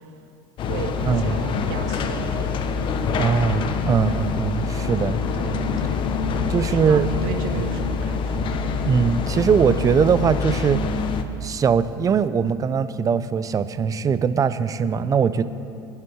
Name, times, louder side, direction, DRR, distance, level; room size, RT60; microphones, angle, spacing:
sound 1, 0.6-11.2, left 5 dB, 45° left, 1.1 m, -25 dB
voice 1, 0.7-2.5 2.8-3.1 5.3-6.0 6.6-8.4, right 7 dB, 75° right, 4 dB, 1.9 m, -34 dB
voice 2, 3.2-5.2 6.5-7.1 8.8-10.8 11.4-15.4, right 6 dB, 30° right, 13 dB, 0.7 m, -21 dB
25.0 x 11.0 x 4.9 m, 2.5 s
supercardioid pair, 110°, 12 cm